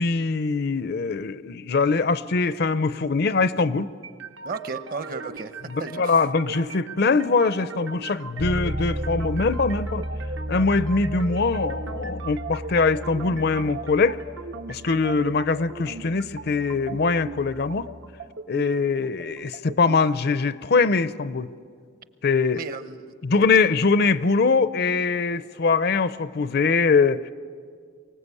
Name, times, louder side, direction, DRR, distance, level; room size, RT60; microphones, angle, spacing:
voice 1, 0.0-3.9 6.0-10.0 10.5-14.2 14.7-17.9 18.5-21.5 22.2-22.6 23.2-27.3, left 4 dB, 55° left, 16 dB, 0.5 m, -22 dB
sound 1, 4.0-20.0, right 3 dB, 80° right, 1.1 m, -39 dB
voice 2, 4.4-5.5 5.8-6.2 22.5-23.0, right 4 dB, 50° right, 12 dB, 0.9 m, -34 dB
Bass guitar, 8.4-18.2, right 1 dB, 15° right, 0.5 m, -35 dB
23.5 x 19.0 x 8.4 m, 2.1 s
head